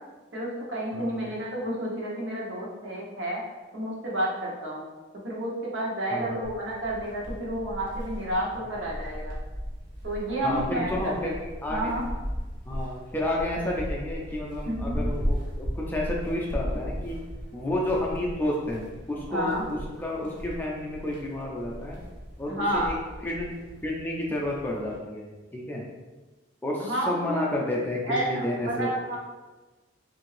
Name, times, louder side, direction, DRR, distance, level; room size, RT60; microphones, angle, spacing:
voice 1, 0.3-3.4 3.7-4.8 5.2-9.3 10.0-11.3 11.7-12.0 14.7-15.0 19.3-19.7 22.5-22.9 26.8-27.5 28.0-29.2, right 1 dB, 70° right, -4 dB, 0.8 m, -30 dB
voice 2, 0.9-1.3 6.1-6.4 10.4-11.4 11.6-11.9 12.7-17.2 17.5-22.0 22.4-22.9 23.2-23.5 23.8-25.9 26.6-28.9, left 1 dB, 10° left, -3 dB, 0.3 m, -31 dB
sound 1, 6.4-25.0, equal, 45° right, 0.8 m, -36 dB
2.7 x 2.5 x 3.2 m, 1.2 s
head